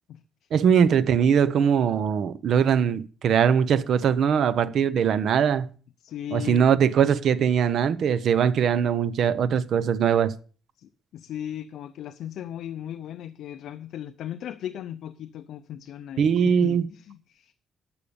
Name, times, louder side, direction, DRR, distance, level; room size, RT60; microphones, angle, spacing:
voice 1, 0.5-5.7 6.3-10.3 16.2-16.8, right 7 dB, 55° right, 0.8 m, -21 dB
voice 2, 6.0-6.7 10.8-17.5, left 11 dB, 70° left, 0.6 m, -37 dB
12.0 x 6.8 x 7.0 m
cardioid pair, 170°, 0 cm